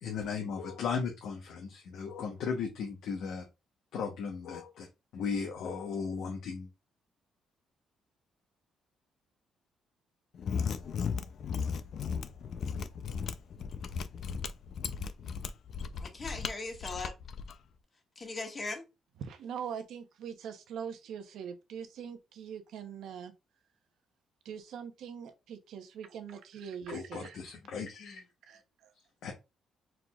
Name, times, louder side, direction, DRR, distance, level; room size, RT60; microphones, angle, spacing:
voice 1, 0.0-3.4 3.9-4.9 5.1-6.7 26.9-28.2 29.2-29.3, left 5 dB, 80° left, 1.0 m, -36 dB
Mechanisms, 10.3-17.5, left 6 dB, 60° left, 0.4 m, -36 dB
voice 2, 16.0-17.1 18.1-18.8, left 3 dB, 35° left, 1.5 m, -39 dB
voice 3, 19.2-23.3 24.4-27.4 28.5-28.9, right 7 dB, 80° right, 0.9 m, -42 dB
4.7 x 3.8 x 2.4 m
cardioid pair, 90°, 0 cm